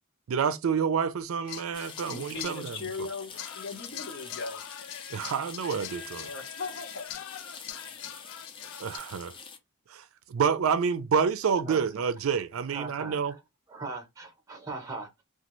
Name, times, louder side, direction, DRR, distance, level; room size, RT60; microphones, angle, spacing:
voice 1, 0.3-2.8 5.1-6.3 8.8-9.3 9.9-13.3, right 6 dB, 85° right, 0.4 m, -28 dB
sound 1, 1.5-2.6 3.3-9.0, left 10 dB, 90° left, 0.4 m, -42 dB
sound 2, 1.7-9.6, left 5 dB, 25° left, 0.4 m, -46 dB
voice 2, 2.0-4.6 6.1-7.0, left 3 dB, 60° left, 0.8 m, -38 dB
voice 3, 12.7-13.4 13.7-15.2, right 3 dB, 15° right, 0.7 m, -40 dB
2.6 x 2.3 x 3.0 m
head